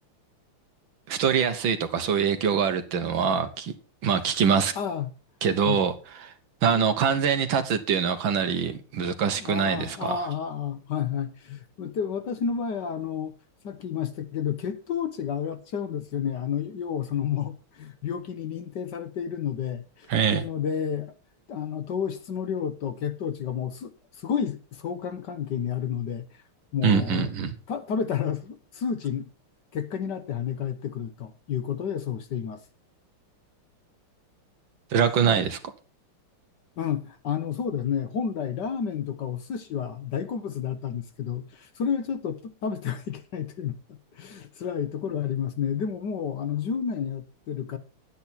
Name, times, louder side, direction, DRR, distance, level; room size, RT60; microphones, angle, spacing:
voice 1, 1.1-3.7 4.0-4.7 5.4-5.9 6.2-6.3 6.6-10.3 20.1-20.4 26.8-27.6 34.9-35.6, right 7 dB, 65° right, 1.8 m, -24 dB
voice 2, 4.7-5.1 5.6-5.8 6.7-6.8 9.4-13.3 13.6-21.1 21.5-26.2 26.7-27.3 27.7-29.3 29.7-32.6 36.8-47.8, left 7 dB, 60° left, 1.4 m, -31 dB
10.5 x 9.6 x 4.3 m
omnidirectional pair, 2.4 m